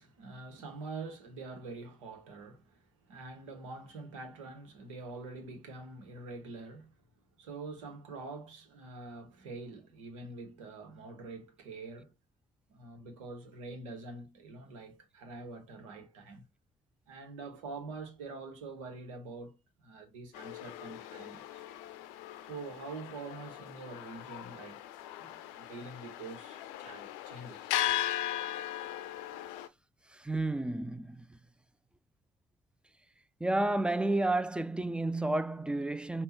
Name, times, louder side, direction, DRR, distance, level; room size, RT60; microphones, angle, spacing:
voice 1, 0.0-7.0 7.4-12.1 12.7-16.5 17.1-21.6 22.4-24.8 25.2-27.9, right 3 dB, 80° right, 1.0 m, -45 dB
sound 1, 20.3-29.7, left 13 dB, 70° left, 0.5 m, -38 dB
voice 2, 30.1-31.4 33.4-36.2, right 2 dB, 5° right, 0.5 m, -31 dB
5.5 x 2.3 x 4.1 m
figure-of-eight pair, 40°, 16 cm